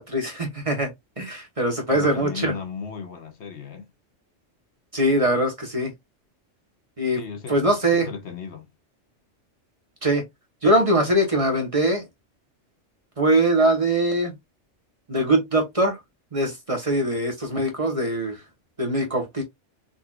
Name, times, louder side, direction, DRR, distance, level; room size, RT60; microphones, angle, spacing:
voice 1, 0.0-2.5 4.9-5.9 7.0-7.2 7.5-8.1 10.0-10.2 10.6-12.0 13.2-14.3 15.1-16.0 16.3-18.4 18.8-19.4, right 1 dB, 30° right, 1.1 m, -22 dB
voice 2, 1.9-3.9 7.1-8.7, left 5 dB, 65° left, 1.1 m, -36 dB
4.0 x 2.7 x 2.3 m
omnidirectional pair, 1.3 m